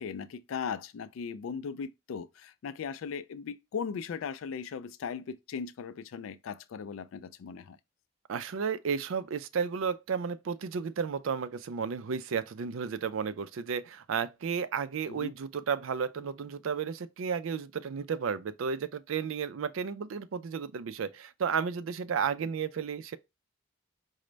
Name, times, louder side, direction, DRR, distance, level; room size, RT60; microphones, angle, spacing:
voice 1, 0.0-7.8 15.1-15.3, left 6 dB, 85° left, 0.4 m, -38 dB
voice 2, 8.3-23.2, right 6 dB, 80° right, 0.4 m, -33 dB
5.0 x 2.1 x 3.2 m
head